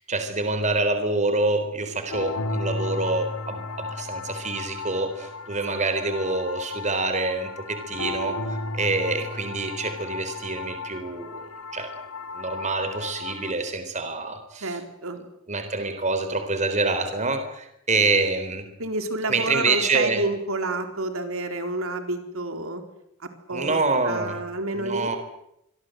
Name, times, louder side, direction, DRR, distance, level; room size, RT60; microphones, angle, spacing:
voice 1, 0.0-11.9 12.3-14.8 15.5-18.7 19.3-20.2 23.5-24.4 24.8-25.2, right 3 dB, 30° right, 8 dB, 3.9 m, -26 dB
sound 1, 2.1-13.5, left 3 dB, 85° left, 3.5 m, -34 dB
voice 2, 14.6-15.2 18.8-22.8 23.5-23.8 24.0-25.1, right 2 dB, 65° right, 7 dB, 4.0 m, -29 dB
26.5 x 22.5 x 7.9 m, 0.80 s
head